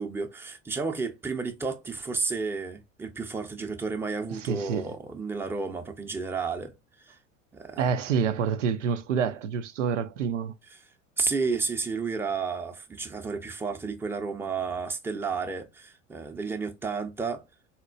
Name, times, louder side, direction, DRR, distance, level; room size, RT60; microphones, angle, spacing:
voice 1, 0.0-6.7 7.1-7.2 7.5-7.8 10.7-10.8 11.2-17.4, right 4 dB, 5° right, 0.6 m, -32 dB
voice 2, 4.3-4.9 7.8-10.5, right 6 dB, 80° right, 0.5 m, -27 dB
4.1 x 2.1 x 2.4 m
hypercardioid pair, 80°, 36 cm